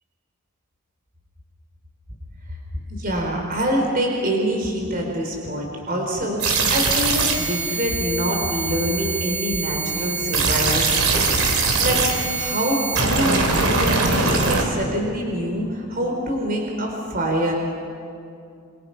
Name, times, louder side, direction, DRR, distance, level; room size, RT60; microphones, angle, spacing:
voice 1, 2.9-17.5, equal, 40° right, 1 dB, 4.0 m, -25 dB
sound 1, 6.4-14.6, right 4 dB, 85° right, 3.5 m, -22 dB
27.0 x 26.5 x 5.8 m, 2.4 s
head